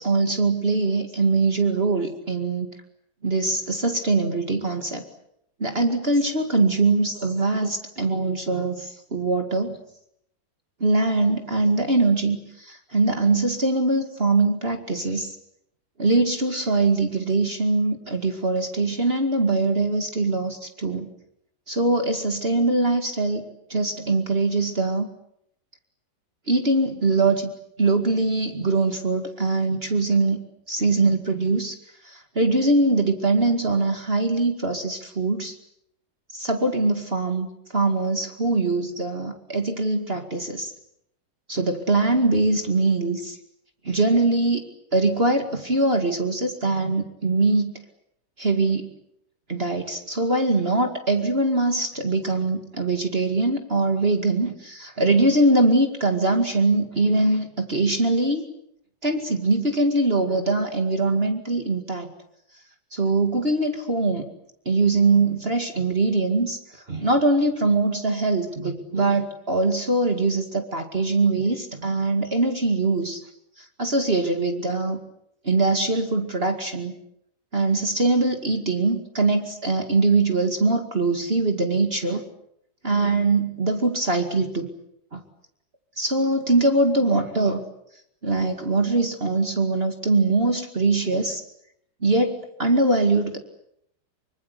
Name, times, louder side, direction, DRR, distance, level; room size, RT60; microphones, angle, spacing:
voice 1, 0.0-2.7 3.2-5.0 5.6-9.7 10.8-15.4 16.0-21.1 21.7-25.1 26.5-27.5 27.8-30.4 30.7-31.8 32.0-35.5 36.3-37.5 37.7-40.7 41.5-43.4 43.8-44.6 44.9-47.7 48.4-48.9 49.5-58.5 59.0-62.1 62.9-64.3 64.7-66.6 66.9-73.2 73.8-75.0 75.4-76.9 77.5-82.2 82.8-84.7 85.1-85.2 86.0-87.6 88.2-91.4 92.0-93.4, right 3 dB, 35° right, 6 dB, 2.4 m, -22 dB
25.0 x 25.0 x 8.3 m, 0.74 s
omnidirectional pair, 1.9 m